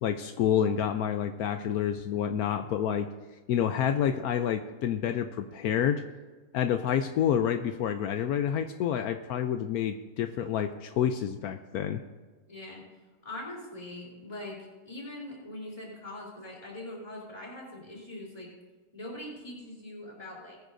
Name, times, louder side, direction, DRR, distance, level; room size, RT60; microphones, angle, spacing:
voice 1, 0.0-3.1 3.5-6.0 6.5-12.0, left 9 dB, 75° left, 8 dB, 1.0 m, -28 dB
voice 2, 12.5-12.8 13.2-18.5 18.9-20.6, left 1 dB, 20° left, -4 dB, 3.6 m, -42 dB
20.0 x 9.6 x 2.6 m, 1.3 s
omnidirectional pair, 1.7 m